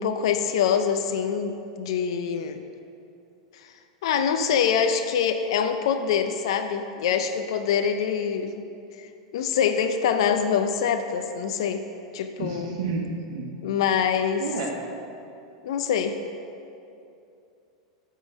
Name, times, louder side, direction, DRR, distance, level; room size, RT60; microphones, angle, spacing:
voice 1, 0.0-2.6 4.0-8.5 9.0-9.1 9.3-11.8 12.1-12.7 13.6-14.5 15.6-16.2, left 7 dB, 70° left, 8 dB, 0.4 m, -24 dB
voice 2, 12.4-13.5 14.4-14.8, right 4 dB, 65° right, 0 dB, 1.2 m, -30 dB
8.4 x 3.7 x 6.0 m, 2.7 s
hypercardioid pair, 105°, 3 cm